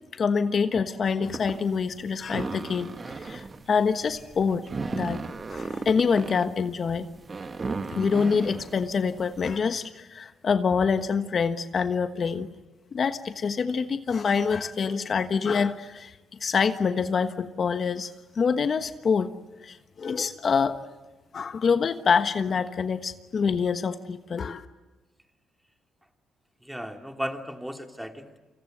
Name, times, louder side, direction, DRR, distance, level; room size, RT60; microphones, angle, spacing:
voice 1, 0.1-5.2 5.5-7.1 7.9-12.5 12.9-18.1 18.3-19.3 19.6-20.8 21.3-24.6, left 5 dB, 50° left, 10 dB, 1.3 m, -26 dB
sound 1, 1.3-9.6, right 4 dB, 35° right, 1.5 m, -36 dB
voice 2, 26.6-28.4, equal, 5° right, 5 dB, 2.9 m, -35 dB
29.0 x 25.5 x 7.9 m, 1.1 s
cardioid pair, 75°, 0 cm